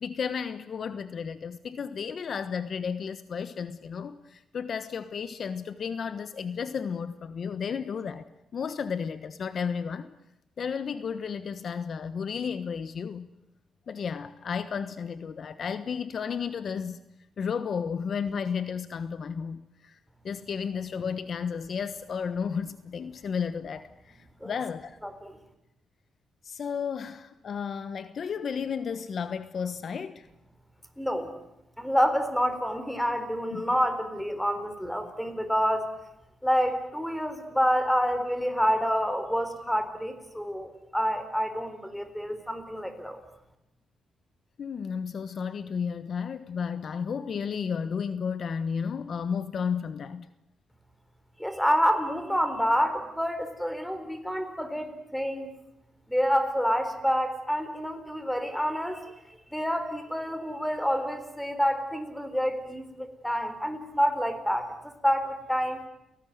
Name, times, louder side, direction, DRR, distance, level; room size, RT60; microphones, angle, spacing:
voice 1, 0.0-8.2 8.5-10.1 10.6-13.3 13.9-17.0 17.4-20.0 20.2-25.0 26.4-30.3 33.5-33.6 44.6-50.3, left 6 dB, 55° left, 1.2 m, -33 dB
voice 2, 25.0-25.4 31.0-31.3 31.8-35.9 36.4-43.2 51.4-55.5 56.1-59.1 59.5-65.8, equal, 5° left, 4.1 m, -28 dB
29.5 x 19.0 x 9.5 m
cardioid pair, 100°, 0 cm